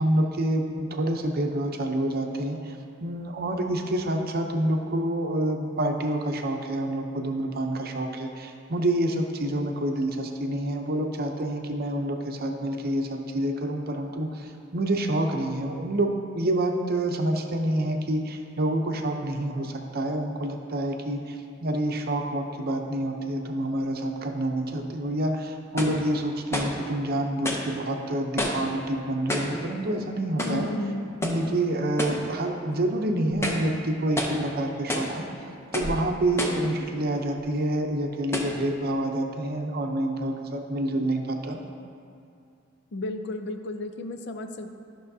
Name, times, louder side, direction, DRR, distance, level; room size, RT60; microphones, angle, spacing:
voice 1, 0.0-30.7 31.2-35.3 35.7-41.6, right 1 dB, 50° right, 4 dB, 0.7 m, -27 dB
sound 1, 24.7-24.8 25.8-26.0 26.5-26.8 27.4-27.7 28.4-28.7 29.3-29.6 30.4-30.7 31.2-31.5 32.0-32.3 32.7-32.8 33.3-33.7 34.2-34.4 34.9-35.2 35.7-36.0 36.4-36.7 37.4-37.5 38.3-38.6, left 1 dB, 15° left, 0.7 m, -29 dB
voice 2, 30.4-31.0 42.9-44.8, left 1 dB, 60° left, 7 dB, 0.5 m, -33 dB
12.5 x 6.2 x 2.7 m, 2.4 s
head